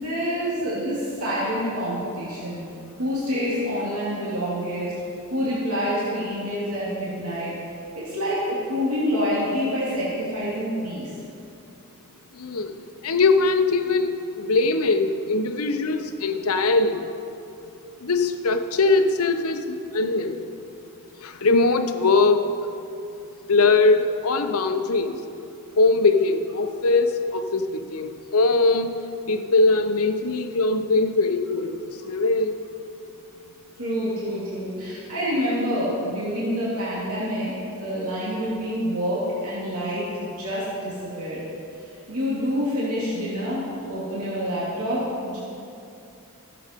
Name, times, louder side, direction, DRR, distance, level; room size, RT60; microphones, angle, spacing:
voice 1, 0.0-2.7 3.0-4.9 5.3-7.5 7.9-11.1 33.8-37.5 37.8-41.4 41.8-45.4, equal, 80° right, -8 dB, 2.7 m, -27 dB
voice 2, 12.3-12.7 13.0-17.1 18.0-20.5 21.2-22.5 23.5-25.2 25.8-28.9 29.3-31.8 32.1-32.6, left 3 dB, 75° left, 7 dB, 0.8 m, -21 dB
14.5 x 7.8 x 5.2 m, 2.7 s
head